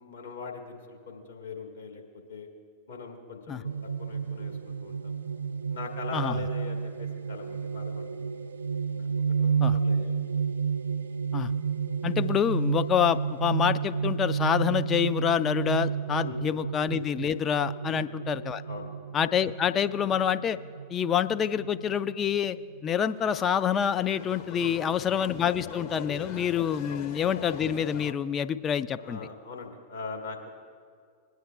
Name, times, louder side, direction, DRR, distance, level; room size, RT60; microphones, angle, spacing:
voice 1, 0.0-2.0 2.3-2.5 2.9-3.7 4.0-5.2 5.7-8.1 8.9-9.1 9.4-10.2 16.2-16.7 17.8-18.1 18.7-18.9 24.6-25.0 26.9-27.0 29.0-30.5, left 4 dB, 70° left, 1 dB, 1.6 m, -41 dB
sound 1, 3.6-22.8, right 6 dB, 75° right, 0.4 m, -31 dB
voice 2, 12.0-18.6 19.1-20.6 20.9-22.6 22.8-29.3, left 8 dB, 25° left, 12 dB, 0.3 m, -27 dB
sound 2, 22.9-28.1, left 6 dB, 45° left, 0.8 m, -42 dB
25.0 x 9.1 x 2.3 m, 2.2 s
figure-of-eight pair, 90°, 0 cm